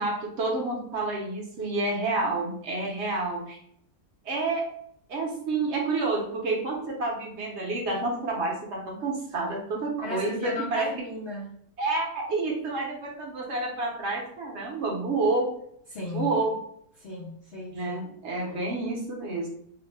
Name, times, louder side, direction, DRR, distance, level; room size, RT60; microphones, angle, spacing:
voice 1, 0.0-3.6 4.2-4.7 5.1-10.9 11.8-15.5 16.1-16.6 17.7-19.5, right 3 dB, 55° right, -1 dB, 0.9 m, -29 dB
voice 2, 10.0-11.5 15.9-16.4 17.0-18.0 18.5-18.6, left 2 dB, 90° left, -5 dB, 0.5 m, -35 dB
2.8 x 2.1 x 3.2 m, 0.67 s
omnidirectional pair, 1.7 m